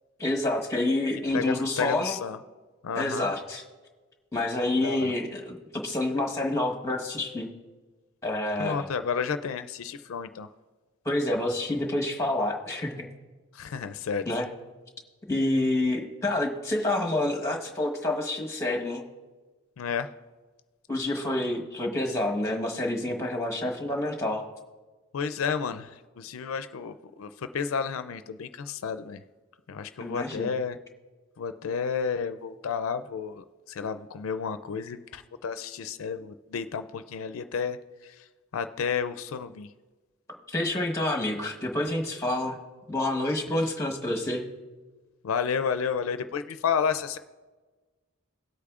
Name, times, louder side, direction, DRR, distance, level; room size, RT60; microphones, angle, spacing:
voice 1, 0.2-2.2 2.9-3.6 4.3-5.6 5.8-7.5 8.2-8.9 11.0-13.1 14.2-14.5 15.3-19.0 20.9-24.5 30.0-30.5 40.5-42.6 42.9-44.5, left 1 dB, 15° left, 1 dB, 1.1 m, -28 dB
voice 2, 1.3-2.4 2.8-3.3 4.8-5.1 8.6-10.5 13.5-14.2 19.8-20.1 25.1-29.2 29.7-30.8 31.4-37.8 38.0-38.3 38.5-39.7 43.5-43.6 45.2-47.2, left 6 dB, 80° left, 10 dB, 0.4 m, -31 dB
18.0 x 8.3 x 2.4 m, 1.3 s
head